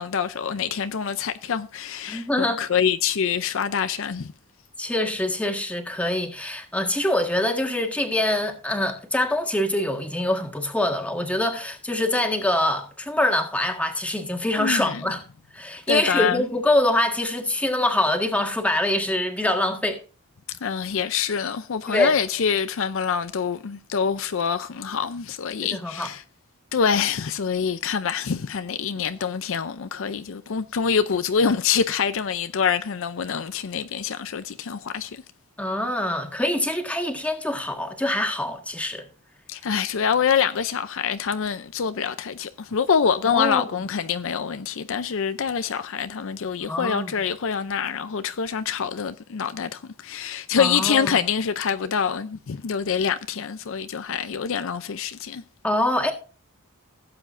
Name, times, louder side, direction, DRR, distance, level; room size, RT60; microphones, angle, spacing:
voice 1, 0.0-4.3 14.6-15.0 15.9-16.4 20.6-26.2 26.7-35.2 39.5-55.4, left 6 dB, 60° left, 0.5 m, -25 dB
voice 2, 2.1-2.6 4.8-15.2 15.5-20.0 21.9-22.1 25.6-26.1 35.6-39.0 43.3-43.7 46.7-47.1 50.6-51.2 55.6-56.1, left 1 dB, 5° left, 1.6 m, -24 dB
17.0 x 7.8 x 2.6 m
head